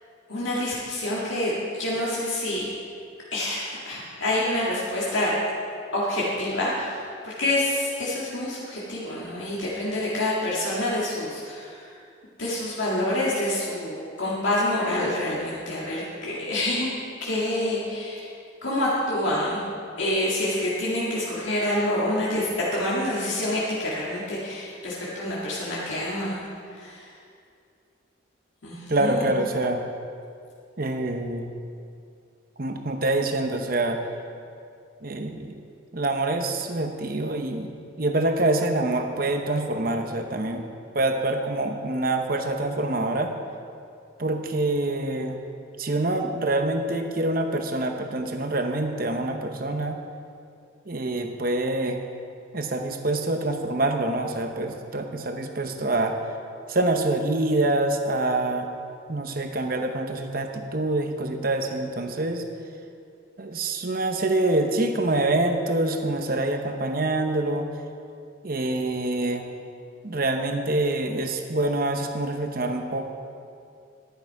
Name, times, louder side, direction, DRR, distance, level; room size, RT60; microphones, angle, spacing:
voice 1, 0.3-1.5 1.8-2.7 3.3-5.3 5.9-12.0 12.4-16.9 17.2-18.3 18.6-19.6 20.0-26.4 26.7-27.1 28.6-29.3, left 1 dB, 75° left, -7 dB, 2.1 m, -27 dB
voice 2, 28.9-29.8 30.8-31.4 32.6-34.0 35.0-35.5 35.9-37.7 38.0-40.7 40.9-43.3 44.2-45.4 45.8-50.0 50.9-52.0 52.5-56.2 56.7-58.7 59.1-62.4 63.4-67.7 68.4-69.4 70.0-73.1, right 2 dB, 45° right, 5 dB, 0.9 m, -26 dB
11.5 x 10.5 x 4.8 m, 2.4 s
head